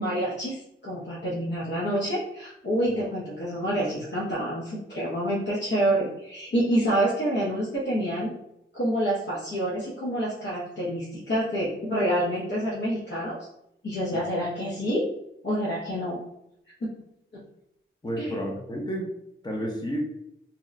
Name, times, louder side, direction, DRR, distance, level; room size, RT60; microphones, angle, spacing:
voice 1, 0.0-8.3 8.7-13.4 13.8-15.1 15.4-16.2 18.2-18.4, right 1 dB, 60° left, -7 dB, 0.6 m, -27 dB
voice 2, 18.0-19.1 19.4-20.0, equal, 20° left, 0 dB, 0.6 m, -31 dB
2.7 x 2.0 x 2.4 m, 0.79 s
wide cardioid pair, 105°, 21 cm